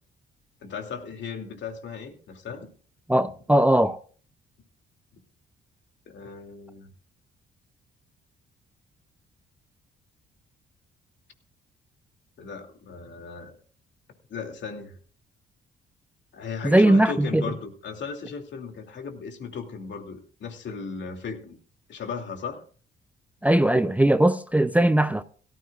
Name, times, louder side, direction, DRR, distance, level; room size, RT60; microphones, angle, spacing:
voice 1, 0.6-2.7 6.1-6.9 12.4-13.5 14.3-15.0 16.3-21.6 21.9-22.6, left 5 dB, 65° left, 2.8 m, -36 dB
voice 2, 3.1-4.0 16.6-17.4 23.4-25.2, right 1 dB, 5° right, 0.6 m, -19 dB
17.5 x 14.0 x 2.5 m
cardioid pair, 90°, 20 cm